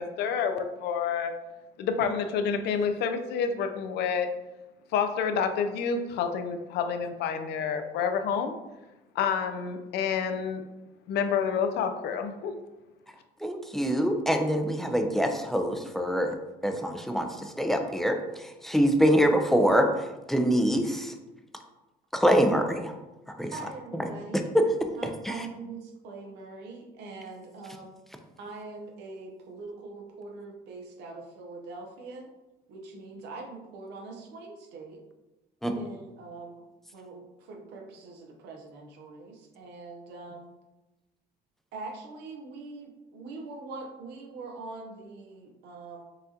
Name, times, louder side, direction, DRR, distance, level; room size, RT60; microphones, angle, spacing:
voice 1, 0.0-1.3 1.8-4.3 4.9-8.5 9.2-10.6 11.1-12.5, left 6 dB, 75° left, 7 dB, 0.5 m, -28 dB
voice 2, 13.4-16.4 16.6-21.1 22.1-22.9 23.4-23.5 23.9-24.1 24.5-24.6 25.2-25.5 35.6-35.7, equal, ahead, 4 dB, 0.4 m, -25 dB
voice 3, 23.5-24.4 25.0-27.9 28.4-32.3 32.7-35.0 35.7-36.7 36.9-40.5 41.7-46.0, right 3 dB, 85° right, 1 dB, 0.9 m, -43 dB
5.6 x 2.4 x 2.8 m, 1.0 s
cardioid pair, 110°, 17 cm